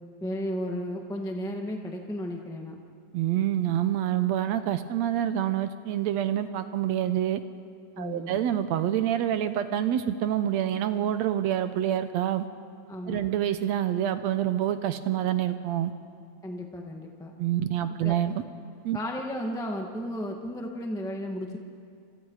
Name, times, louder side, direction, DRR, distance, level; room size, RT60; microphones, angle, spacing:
voice 1, 0.2-2.8 7.9-8.3 12.9-13.3 16.4-17.3 18.0-18.1 18.9-21.6, equal, ahead, 1 dB, 0.8 m, -34 dB
voice 2, 3.1-7.4 8.0-12.5 13.1-15.9 17.4-18.3 18.8-19.0, right 11 dB, 70° right, 10 dB, 1.8 m, -27 dB
29.5 x 26.5 x 4.8 m, 2.3 s
omnidirectional pair, 3.5 m